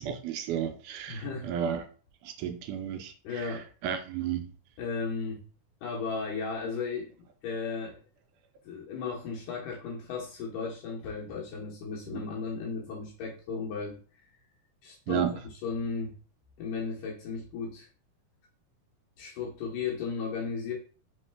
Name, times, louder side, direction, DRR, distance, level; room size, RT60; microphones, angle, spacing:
voice 1, 0.0-1.9 2.2-3.5 3.8-4.5 12.1-12.3 15.1-15.3, right 9 dB, 80° right, 1.9 m, -33 dB
voice 2, 1.1-1.5 3.2-3.7 4.8-5.5 5.8-8.0 8.6-14.0 14.8-16.2 16.6-17.9 19.2-20.7, left 5 dB, 75° left, 2.4 m, -35 dB
5.2 x 3.1 x 3.3 m
omnidirectional pair, 3.8 m